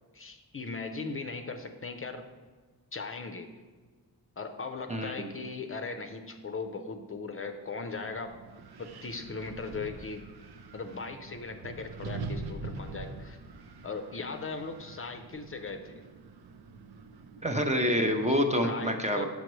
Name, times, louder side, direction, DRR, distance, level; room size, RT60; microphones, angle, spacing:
voice 1, 0.1-2.3 2.9-3.5 4.4-8.4 8.8-10.2 10.7-13.4 13.8-16.0 18.6-19.3, left 4 dB, 35° left, 5 dB, 0.5 m, -38 dB
voice 2, 4.9-5.3 17.4-19.3, equal, 20° right, 4 dB, 0.5 m, -27 dB
Wind, 7.9-17.9, right 3 dB, 80° right, 0.6 m, -44 dB
6.8 x 6.4 x 3.1 m, 1.4 s
wide cardioid pair, 95°, 38 cm